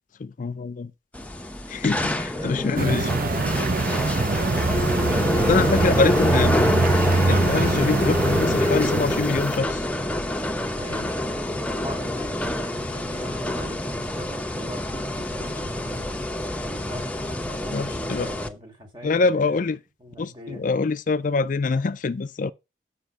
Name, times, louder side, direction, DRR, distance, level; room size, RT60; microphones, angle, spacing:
voice 1, 0.2-0.9 1.7-3.1 5.5-6.5 7.3-9.9 17.7-18.3 19.0-19.8 20.2-22.5, left 4 dB, 50° left, 0.4 m, -24 dB
sound 1, 1.1-18.5, left 1 dB, 10° left, 0.8 m, -26 dB
voice 2, 2.3-5.7 6.0-6.2 10.7-16.1 16.6-19.7 20.0-20.6, equal, 25° right, 2.1 m, -41 dB
sound 2, 2.8-9.6, right 3 dB, 55° right, 0.6 m, -24 dB
8.0 x 6.0 x 6.4 m
head